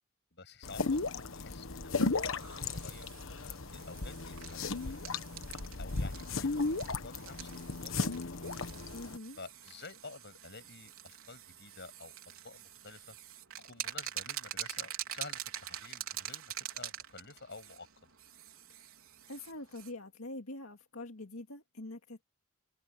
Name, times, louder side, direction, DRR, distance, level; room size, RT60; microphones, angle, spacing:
voice 1, 0.3-3.1 3.7-5.1 5.8-8.3 9.4-13.2 13.6-17.9, left 3 dB, 55° left, 7.8 m, -51 dB
sound 1, 0.6-9.2, left 3 dB, 70° left, 1.3 m, -35 dB
sound 2, 2.4-19.9, right 11 dB, 90° right, 3.8 m, -45 dB
voice 2, 8.9-9.4 19.3-22.2, left 2 dB, 90° left, 2.1 m, -44 dB
open air
head